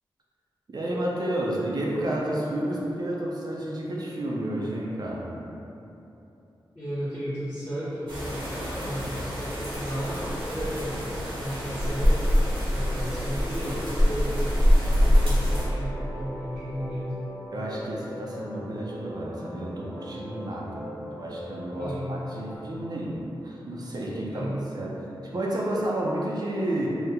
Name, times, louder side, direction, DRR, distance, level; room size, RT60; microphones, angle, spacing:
voice 1, 0.7-5.3 17.5-20.8 21.1-25.0 25.2-26.9, right 1 dB, 50° right, -4 dB, 0.4 m, -31 dB
voice 2, 6.7-11.0 11.4-12.2 12.7-14.4 14.8-17.1 21.0-21.1 21.8-22.2 24.3-24.6, equal, 25° left, -16 dB, 0.8 m, -34 dB
sound 1, 8.1-15.6, equal, 80° right, 1.0 m, -25 dB
sound 2, 15.4-22.6, equal, 25° right, 0.7 m, -41 dB
2.9 x 2.0 x 3.5 m, 2.9 s
wide cardioid pair, 120°, 9 cm